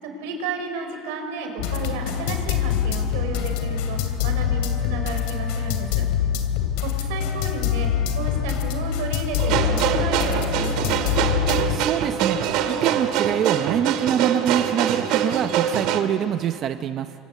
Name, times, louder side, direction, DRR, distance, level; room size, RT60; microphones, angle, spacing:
voice 1, 0.0-6.1 6.8-7.9 8.2-11.3, right 4 dB, 90° right, 4 dB, 5.3 m, -32 dB
sound 1, 1.6-11.8, left 9 dB, 80° left, 2.8 m, -25 dB
sound 2, 9.4-16.0, right 9 dB, 65° right, 2.2 m, -24 dB
voice 2, 11.7-17.1, right 10 dB, 45° right, 9 dB, 0.7 m, -25 dB
28.0 x 25.5 x 8.2 m, 2.8 s
cardioid pair, 140°, 0 cm